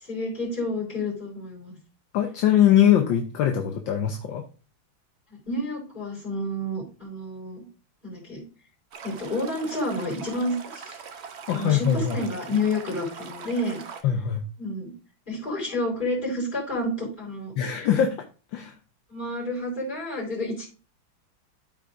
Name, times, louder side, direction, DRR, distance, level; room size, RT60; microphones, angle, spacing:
voice 1, 0.0-1.7 5.5-7.6 8.0-8.4 9.0-11.0 11.5-13.8 14.6-14.9 15.3-17.5 19.1-20.7, left 1 dB, 20° left, -5 dB, 4.3 m, -30 dB
voice 2, 2.1-4.4 11.5-12.2 14.0-14.4 17.6-18.2 18.5-18.7, left 10 dB, 70° left, 4 dB, 1.4 m, -22 dB
Stream, 8.9-14.0, right 6 dB, 90° right, 0.5 m, -41 dB
13.5 x 4.6 x 2.5 m, 0.35 s
omnidirectional pair, 2.2 m